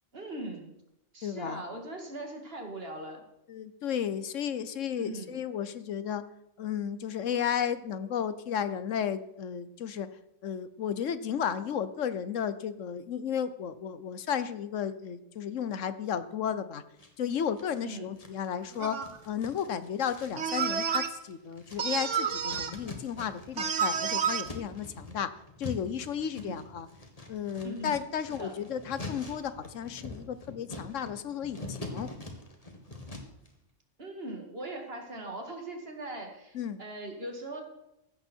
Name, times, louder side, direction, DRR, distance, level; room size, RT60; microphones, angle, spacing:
voice 1, 0.1-0.7 1.1-3.2 5.0-5.3 17.8-18.1 26.4-26.6 27.6-28.0 28.3-28.6 34.0-37.6, right 2 dB, 50° right, 3 dB, 2.5 m, -40 dB
voice 2, 1.2-1.6 3.5-6.2 6.6-10.1 10.4-16.8 17.2-19.0 19.2-25.3 25.6-26.9 27.3-32.1 36.5-36.8, left 8 dB, 85° left, 13 dB, 1.3 m, -33 dB
sound 1, 17.0-17.8 18.2-23.7 23.9-33.5, left 2 dB, 30° left, 2.0 m, -44 dB
sound 2, 18.8-19.2 20.4-21.1 21.8-22.7 23.6-24.4, right 7 dB, 75° right, 1.4 m, -29 dB
15.5 x 12.5 x 4.5 m, 0.84 s
omnidirectional pair, 1.3 m